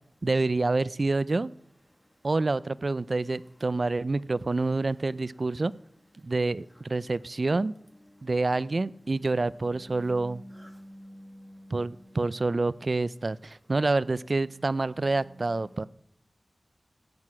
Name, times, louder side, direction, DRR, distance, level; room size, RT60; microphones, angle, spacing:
voice 1, 0.2-1.5 2.2-5.7 6.2-7.7 8.2-10.4 11.7-15.9, right 3 dB, 50° right, 19 dB, 0.4 m, -27 dB
voice 2, 10.0-11.8, equal, ahead, 6 dB, 1.8 m, -47 dB
14.5 x 9.5 x 6.1 m, 0.73 s
wide cardioid pair, 80°, 0 cm